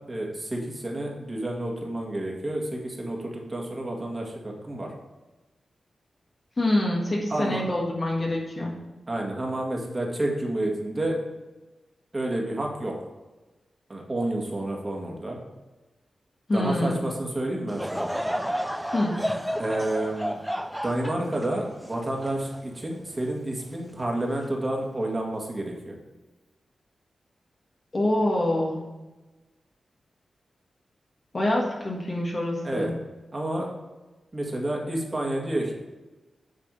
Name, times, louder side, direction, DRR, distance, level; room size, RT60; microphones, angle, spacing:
voice 1, 0.1-4.9 7.3-7.6 9.1-11.2 12.1-12.9 13.9-15.4 16.5-18.1 19.6-20.3 20.8-25.9 32.6-32.9 33.3-33.7 34.3-35.7, right 1 dB, 30° right, -1 dB, 1.9 m, -30 dB
voice 2, 6.6-8.7 16.5-17.0 18.9-19.2 27.9-28.8 31.3-32.9, left 1 dB, 35° left, -2 dB, 1.5 m, -25 dB
Laughter / Crowd, 17.7-23.2 23.7-23.8 24.6-24.9, equal, 5° right, 0.4 m, -31 dB
9.1 x 3.4 x 6.8 m, 1.1 s
wide cardioid pair, 90°, 0 cm